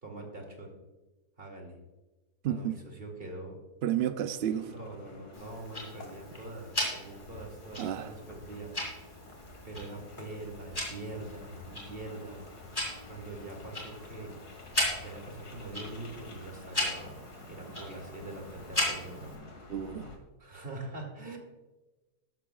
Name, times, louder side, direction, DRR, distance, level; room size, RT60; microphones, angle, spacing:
voice 1, 0.0-0.7 1.4-1.7 2.4-3.6 4.6-8.7 9.6-12.4 13.1-14.3 15.0-19.4 20.4-21.4, right 2 dB, 35° right, 1 dB, 2.5 m, -43 dB
voice 2, 2.4-2.8 3.8-4.7 7.8-8.1 19.7-20.1, right 10 dB, 80° right, 10 dB, 0.5 m, -31 dB
sound 1, 4.3-20.2, left 2 dB, 80° left, 2.3 m, -50 dB
Tick-tock, 5.3-19.3, left 1 dB, 20° left, 3.8 m, -38 dB
13.0 x 13.0 x 2.4 m, 1.2 s
omnidirectional pair, 1.7 m